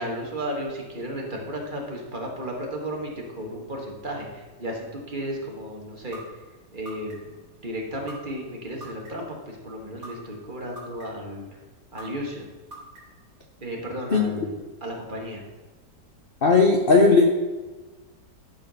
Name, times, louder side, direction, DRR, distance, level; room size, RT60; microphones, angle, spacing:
voice 1, 0.0-6.3 6.7-7.3 7.6-11.5 11.9-12.4 13.6-15.4, equal, 30° right, 0 dB, 1.8 m, -34 dB
sound 1, 6.1-6.2 6.9-7.4 8.1-8.2 8.8-9.3 10.0-10.1 10.8-11.3 12.0-12.1 12.7-13.2, right 1 dB, 65° right, 3.6 m, -41 dB
voice 2, 16.4-17.3, left 3 dB, 40° left, 3 dB, 0.8 m, -16 dB
12.0 x 5.0 x 6.3 m, 1.2 s
omnidirectional pair, 1.9 m